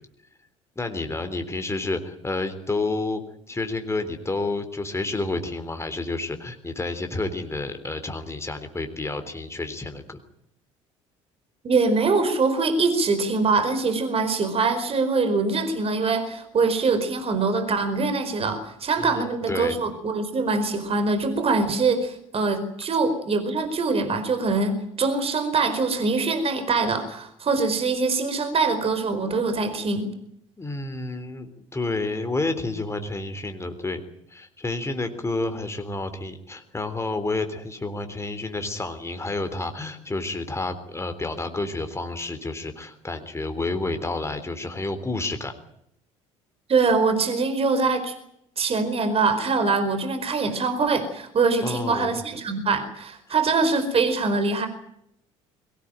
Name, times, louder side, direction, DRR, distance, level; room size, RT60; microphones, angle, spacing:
voice 1, 0.8-3.2 3.5-10.2 19.0-19.8 30.6-34.0 34.3-45.5 51.6-52.2, left 2 dB, 15° left, 7 dB, 3.6 m, -30 dB
voice 2, 11.6-30.1 46.7-48.1 48.6-54.7, right 4 dB, 35° right, 9 dB, 4.7 m, -23 dB
22.5 x 18.5 x 9.0 m, 0.74 s
figure-of-eight pair, 55°, 16 cm